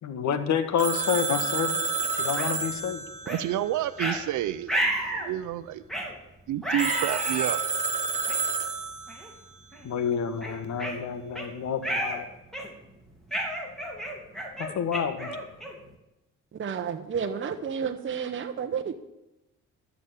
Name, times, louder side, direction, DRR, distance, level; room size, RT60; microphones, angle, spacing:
voice 1, 0.0-1.8 2.1-3.0 9.8-12.3 14.6-15.3, left 7 dB, 65° left, 9 dB, 1.6 m, -28 dB
Telephone, 0.8-4.4 6.8-9.3, right 5 dB, 25° right, 2.0 m, -30 dB
sound 1, 2.4-2.5 3.3-3.4 4.0-4.2 4.7-5.3 5.9-6.1 6.6-7.5 8.3-8.4 9.1-9.3 9.7-9.9 10.4-11.5 11.8-12.2 12.5-12.9 13.3-15.9, right 1 dB, ahead, 3.3 m, -31 dB
voice 2, 3.3-5.8 6.5-7.6, right 12 dB, 75° right, 14 dB, 0.6 m, -30 dB
voice 3, 16.5-18.9, right 7 dB, 40° right, 6 dB, 1.0 m, -31 dB
12.5 x 7.0 x 8.1 m, 0.96 s
cardioid pair, 90°, 30 cm